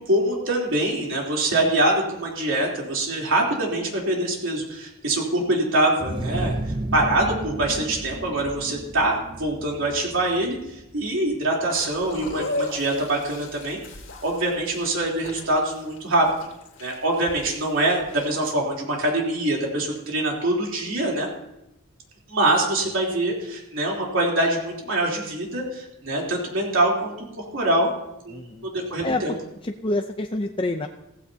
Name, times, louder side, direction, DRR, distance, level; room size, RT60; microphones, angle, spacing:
voice 1, 0.0-6.5 6.9-10.6 10.9-13.8 14.2-16.3 16.8-21.3 22.3-27.9 28.2-29.3, right 1 dB, 65° right, -2 dB, 3.4 m, -24 dB
sound 1, 6.0-11.5, right 1 dB, 25° right, 0.6 m, -33 dB
sound 2, 11.7-18.5, left 2 dB, 65° left, 2.3 m, -36 dB
voice 2, 28.3-28.7 29.0-29.2 29.6-30.9, left 2 dB, 25° left, 4 dB, 0.6 m, -27 dB
16.5 x 15.0 x 2.8 m, 0.86 s
head